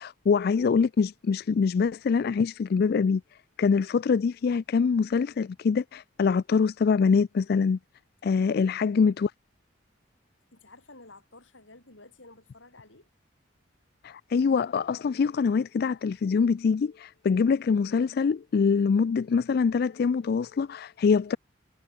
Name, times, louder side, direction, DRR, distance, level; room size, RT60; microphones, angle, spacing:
voice 1, 0.0-3.2 3.6-7.8 8.2-9.3 14.0-21.4, left 5 dB, 55° left, 0.3 m, -24 dB
voice 2, 10.5-13.1, left 2 dB, 85° left, 7.6 m, -52 dB
head